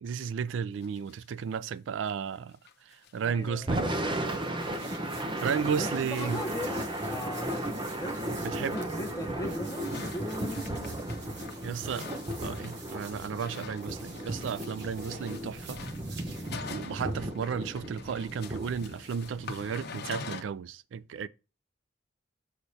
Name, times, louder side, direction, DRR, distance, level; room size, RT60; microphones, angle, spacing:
voice 1, 0.0-4.6 5.4-6.4 8.4-8.8 11.6-12.1 12.4-15.8 16.7-21.3, right 7 dB, 90° right, 0.3 m, -34 dB
sound 1, 0.8-1.3 1.6-1.7 1.9-2.0 2.4-2.5 2.7-3.3 3.6-3.7 4.0-4.1 4.6-4.8 5.3-20.4, left 4 dB, 60° left, 0.8 m, -46 dB
voice 2, 3.2-3.7 5.7-11.0, left 1 dB, 20° left, 0.9 m, -39 dB
Thunder / Rain, 3.5-19.8, right 1 dB, 25° right, 0.8 m, -35 dB
sound 2, 4.1-16.5, right 4 dB, 65° right, 1.1 m, -49 dB
6.6 x 6.3 x 2.8 m
head